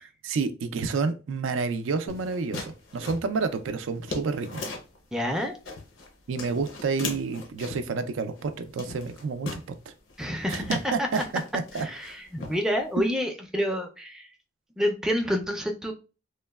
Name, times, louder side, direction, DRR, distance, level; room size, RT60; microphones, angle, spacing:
voice 1, 0.2-4.6 6.3-9.6 10.5-11.2 11.5-11.9, right 4 dB, 85° right, 9 dB, 0.4 m, -29 dB
sound 1, 2.1-5.0 5.4-6.1 6.4-7.9 8.4-8.5 8.8-9.7 10.1-10.2 10.5-12.1 12.4-13.0, left 3 dB, 80° left, 0.6 m, -38 dB
voice 2, 5.1-5.5 10.2-11.2 11.8-14.3 14.8-15.9, equal, 5° right, 3 dB, 0.4 m, -28 dB
3.0 x 2.0 x 2.2 m, 0.31 s
head